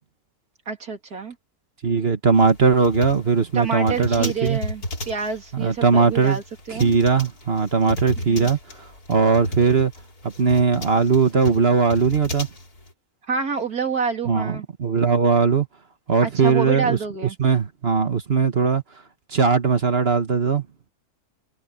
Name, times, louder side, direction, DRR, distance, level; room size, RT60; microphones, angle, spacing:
voice 1, 0.7-1.4 3.5-6.9 8.2-8.5 13.3-14.7 16.2-17.4, right 5 dB, 70° right, 3.5 m, -28 dB
voice 2, 1.8-4.6 5.5-6.4 6.7-8.6 9.1-9.9 10.4-12.5 14.3-15.7 16.1-17.0 17.4-18.8 19.3-20.6, right 5 dB, 40° right, 1.6 m, -19 dB
sound 1, 2.3-12.9, left 1 dB, 75° left, 4.9 m, -33 dB
omnidirectional pair, 1.6 m